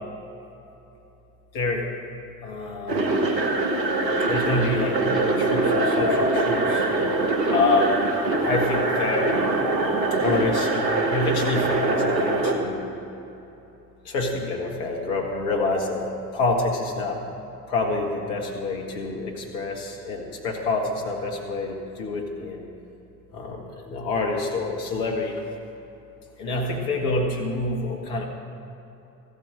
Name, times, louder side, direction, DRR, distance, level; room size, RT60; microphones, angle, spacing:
voice 1, 1.5-1.9 2.4-3.1 4.3-6.8 7.5-8.0 8.4-9.4 10.2-10.7 11.1-12.9 14.1-17.2 17.7-22.7 23.3-25.4 26.4-28.3, left 2 dB, 65° left, 1 dB, 1.8 m, -27 dB
sound 1, 2.9-12.5, right 2 dB, 85° right, 1.1 m, -23 dB
14.0 x 9.1 x 7.6 m, 3.0 s
figure-of-eight pair, 50°, 49 cm